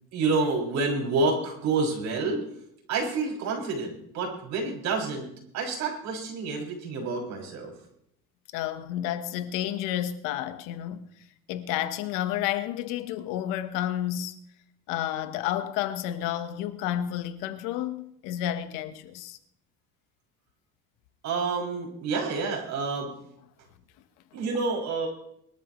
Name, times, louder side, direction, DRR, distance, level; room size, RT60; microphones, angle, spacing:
voice 1, 0.1-2.5 2.9-5.3 5.5-7.7 21.2-23.1 24.3-25.1, right 3 dB, 60° right, 6.9 m, -28 dB
voice 2, 8.5-11.1 11.5-14.4 14.9-19.4, left 12 dB, 85° left, 1.4 m, -31 dB
22.5 x 13.5 x 3.2 m
cardioid pair, 115°, 31 cm